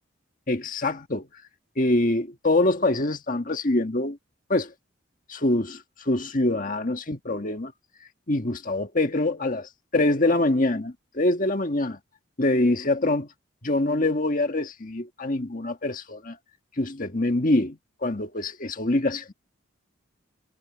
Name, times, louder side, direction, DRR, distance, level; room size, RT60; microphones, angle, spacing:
voice 1, 0.5-1.3 1.8-4.2 4.5-4.7 5.3-7.7 8.3-12.0 12.4-13.3 13.6-16.4 16.8-19.3, left 2 dB, 40° left, 1.6 m, -25 dB
head